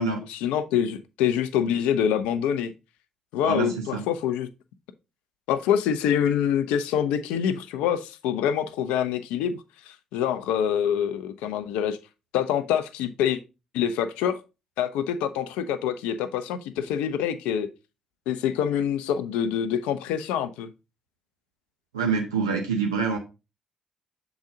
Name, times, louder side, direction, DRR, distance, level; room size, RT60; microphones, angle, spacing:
voice 1, 0.0-2.7 3.3-4.5 5.5-9.6 9.9-12.0 12.3-13.4 13.7-14.4 14.8-17.7 18.3-20.7, left 9 dB, 70° left, 0.5 m, -26 dB
voice 2, 3.4-4.0 21.9-23.2, right 5 dB, 85° right, 0.7 m, -26 dB
7.0 x 3.9 x 3.7 m
figure-of-eight pair, 40°, 2 cm